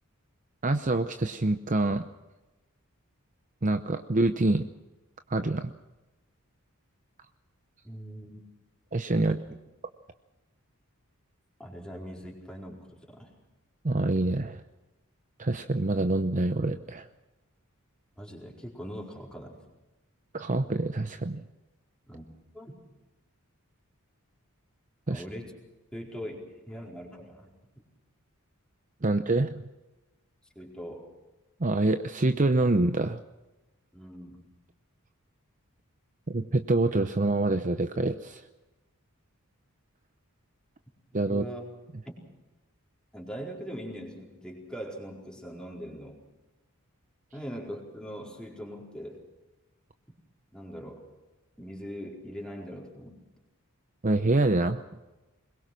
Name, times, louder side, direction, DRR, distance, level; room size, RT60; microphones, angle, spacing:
voice 1, 0.6-2.1 3.6-4.7 5.3-5.7 8.9-9.4 13.8-14.6 15.4-17.1 20.3-21.4 25.1-25.2 29.0-29.7 31.6-33.2 36.3-38.5 41.1-41.5 54.0-54.8, right 2 dB, 35° right, 9 dB, 0.8 m, -26 dB
voice 2, 7.8-8.4 11.6-13.3 18.2-19.6 22.1-22.2 22.5-22.8 25.1-25.5 25.9-27.5 30.5-31.1 33.9-34.5 41.3-41.6 42.0-42.2 43.1-46.2 47.3-49.3 50.1-50.2 50.5-51.1 51.6-53.2, equal, 5° left, -1 dB, 4.5 m, -41 dB
23.0 x 21.5 x 6.2 m, 1.0 s
head